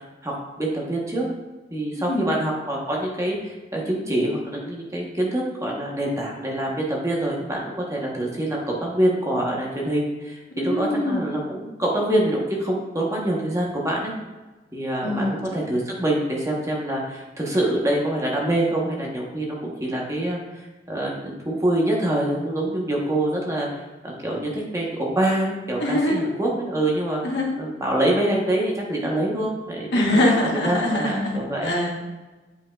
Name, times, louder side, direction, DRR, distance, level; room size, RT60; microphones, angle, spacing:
voice 1, 0.2-1.3 1.7-14.1 14.7-20.4 20.9-23.7 24.0-27.2 27.6-30.4 30.6-31.7, right 1 dB, 15° right, -2 dB, 1.1 m, -25 dB
voice 2, 10.5-11.2 15.0-15.4 25.8-26.3 27.2-27.5 29.9-32.1, left 1 dB, 65° left, -1 dB, 1.2 m, -23 dB
8.1 x 5.3 x 2.4 m, 1.2 s
head